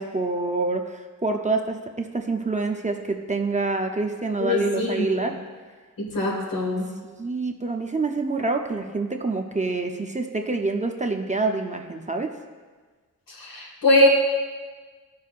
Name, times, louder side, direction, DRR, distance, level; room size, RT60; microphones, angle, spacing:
voice 1, 0.0-5.3 7.0-12.3, right 3 dB, 20° right, 4 dB, 0.6 m, -26 dB
voice 2, 4.4-5.3 6.0-6.9 13.4-14.1, left 1 dB, 80° left, -2 dB, 2.0 m, -22 dB
13.5 x 5.5 x 2.5 m, 1.4 s
wide cardioid pair, 100°, 33 cm